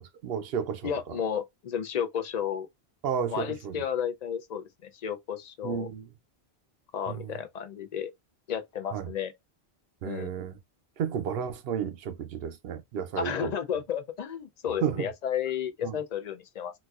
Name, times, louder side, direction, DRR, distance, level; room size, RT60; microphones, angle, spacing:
voice 1, 0.0-1.2 3.0-3.8 5.6-6.1 7.1-7.4 8.9-9.1 10.0-10.6 11.0-13.5 14.8-15.1 15.8-16.0, right 8 dB, 70° right, 0.8 m, -32 dB
voice 2, 0.8-2.7 3.3-5.9 6.9-8.1 8.5-9.3 10.0-10.3 13.2-16.7, left 8 dB, 55° left, 0.5 m, -32 dB
4.0 x 2.4 x 2.3 m
omnidirectional pair, 1.1 m